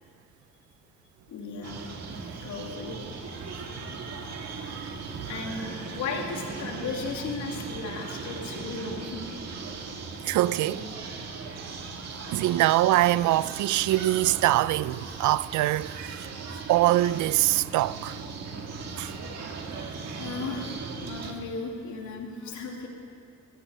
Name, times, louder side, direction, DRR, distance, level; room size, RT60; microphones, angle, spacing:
voice 1, 1.3-1.9 2.4-3.0 5.3-9.4 10.4-10.8 20.2-22.9, left 4 dB, 75° left, 2.7 m, -36 dB
sound 1, 1.6-21.3, right 4 dB, 60° right, 1.8 m, -38 dB
voice 2, 10.2-10.8 12.3-16.3 16.7-18.2 19.0-19.1, right 15 dB, 75° right, 0.5 m, -23 dB
15.5 x 13.0 x 6.7 m
cardioid pair, 90°, 30 cm